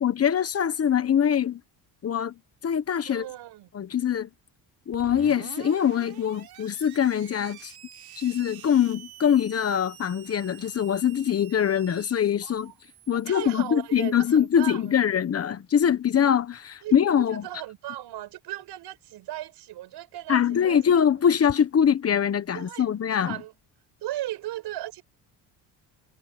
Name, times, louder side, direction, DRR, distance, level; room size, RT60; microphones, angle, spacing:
voice 1, 0.0-1.6 2.0-2.3 2.6-3.3 3.7-4.3 4.9-7.7 8.2-12.7 13.1-17.4 20.3-23.4, left 8 dB, 35° left, 1.2 m, -23 dB
voice 2, 3.1-3.7 12.4-12.7 13.1-15.2 16.8-20.8 22.5-22.9 23.1-23.5 24.0-25.0, right 14 dB, 80° right, 5.6 m, -37 dB
Screech, 4.9-15.4, right 11 dB, 65° right, 3.6 m, -48 dB
cardioid pair, 130°, 39 cm